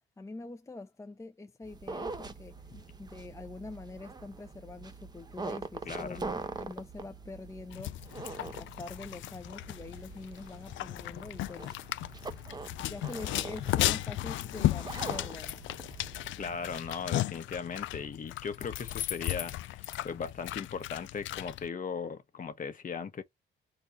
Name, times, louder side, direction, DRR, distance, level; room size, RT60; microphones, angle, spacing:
voice 1, 0.2-2.5 3.0-7.9 8.4-11.8 12.8-15.7, left 3 dB, 15° left, 0.6 m, -45 dB
sound 1, 1.6-16.9, right 3 dB, 20° right, 0.9 m, -44 dB
voice 2, 5.9-6.2 16.4-23.2, left 6 dB, 45° left, 1.1 m, -38 dB
sound 2, 7.7-21.7, left 15 dB, 75° left, 0.4 m, -35 dB
4.0 x 2.5 x 4.5 m
cardioid pair, 90°, 20 cm